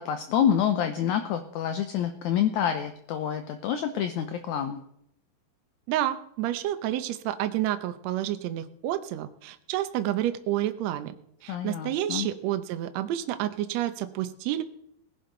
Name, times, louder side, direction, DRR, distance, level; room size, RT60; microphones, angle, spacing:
voice 1, 0.0-4.8 11.5-12.3, left 9 dB, 75° left, 7 dB, 1.9 m, -27 dB
voice 2, 5.9-11.1 11.4-14.6, right 13 dB, 80° right, 9 dB, 1.5 m, -29 dB
19.0 x 11.0 x 3.9 m, 0.74 s
omnidirectional pair, 4.1 m